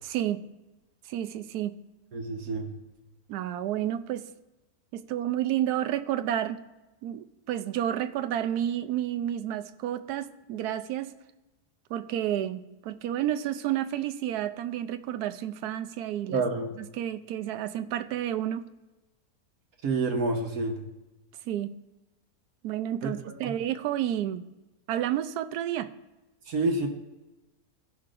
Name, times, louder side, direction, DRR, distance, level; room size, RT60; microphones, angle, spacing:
voice 1, 0.0-0.4 1.1-1.8 3.3-4.3 4.9-6.6 7.0-11.1 11.9-16.4 16.8-18.7 21.5-21.7 22.6-24.5 24.9-25.9, right 11 dB, 85° right, 10 dB, 1.1 m, -30 dB
voice 2, 2.1-2.7 16.3-16.7 19.8-20.8 23.0-23.1 23.4-23.5 26.5-26.9, right 3 dB, 70° right, 2 dB, 1.4 m, -28 dB
17.0 x 5.7 x 2.5 m, 1.0 s
omnidirectional pair, 1.6 m